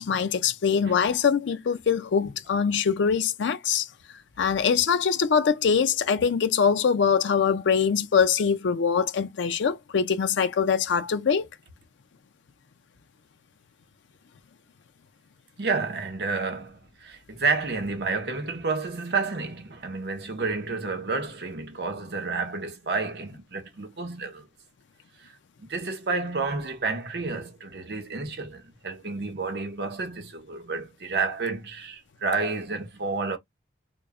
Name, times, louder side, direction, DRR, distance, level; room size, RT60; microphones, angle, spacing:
voice 1, 0.0-3.9 4.4-11.5, left 6 dB, 85° left, 0.4 m, -23 dB
voice 2, 15.6-24.5 25.6-33.4, right 4 dB, 65° right, 0.8 m, -30 dB
2.2 x 2.0 x 3.4 m
head